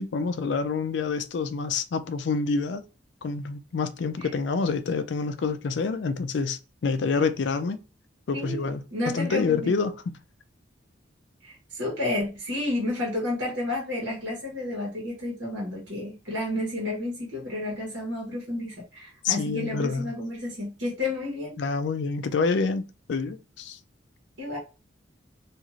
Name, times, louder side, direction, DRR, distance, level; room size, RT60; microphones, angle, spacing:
voice 1, 0.0-2.8 3.2-7.8 8.3-8.8 9.1-9.9 19.2-20.1 21.6-23.8, left 4 dB, 60° left, 0.4 m, -27 dB
voice 2, 8.3-9.7 11.4-21.5 24.4-24.6, left 2 dB, 65° right, 1.1 m, -31 dB
3.0 x 2.5 x 2.4 m
head